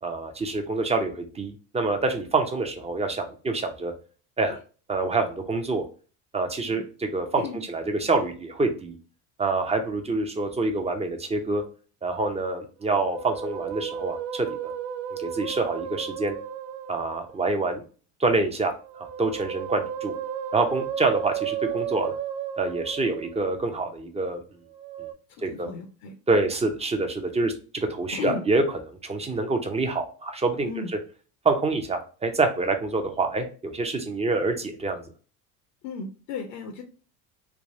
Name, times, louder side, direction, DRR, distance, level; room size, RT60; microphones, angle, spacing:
voice 1, 0.0-3.9 4.4-4.6 4.9-5.8 6.3-9.0 9.4-11.6 12.0-14.7 15.1-16.4 16.9-17.8 18.2-20.1 20.5-22.2 22.6-24.4 25.4-25.7 26.3-30.7 31.4-35.0, right 3 dB, 15° right, 5 dB, 0.5 m, -26 dB
Musical instrument, 12.8-17.5 18.7-23.6 24.7-25.1, right 9 dB, 60° right, 0.7 m, -34 dB
voice 2, 25.5-26.1 28.1-28.5 30.6-30.9 35.8-36.8, left 5 dB, 60° left, 4 dB, 0.7 m, -34 dB
3.4 x 2.2 x 2.6 m, 0.37 s
hypercardioid pair, 80°, 46 cm